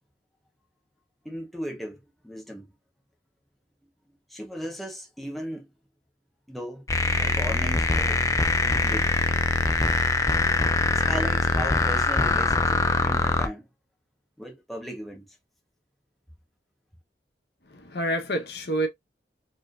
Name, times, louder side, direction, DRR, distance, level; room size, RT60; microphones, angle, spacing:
voice 1, 1.2-2.7 4.3-5.7 6.5-6.9 7.2-8.2 8.6-9.1 10.9-13.7 14.4-15.3, equal, ahead, 0.8 m, -37 dB
sound 1, 6.9-13.5, left 3 dB, 15° left, 0.4 m, -23 dB
voice 2, 17.6-18.9, right 1 dB, 65° left, 1.1 m, -28 dB
4.5 x 3.1 x 2.5 m
head